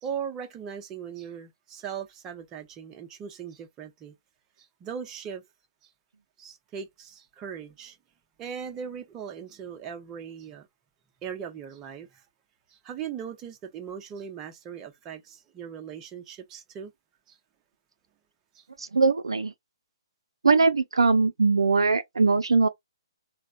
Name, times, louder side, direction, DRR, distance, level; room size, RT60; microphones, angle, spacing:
voice 1, 0.0-4.1 4.6-5.4 5.8-5.9 6.4-8.0 8.4-10.7 11.2-12.2 12.7-16.9 17.3-17.4 18.5-18.7, right 7 dB, 20° right, 0.6 m, -39 dB
voice 2, 18.8-19.5 20.4-22.7, right 4 dB, 80° right, 0.3 m, -21 dB
3.2 x 2.0 x 2.4 m
figure-of-eight pair, 135°, 3 cm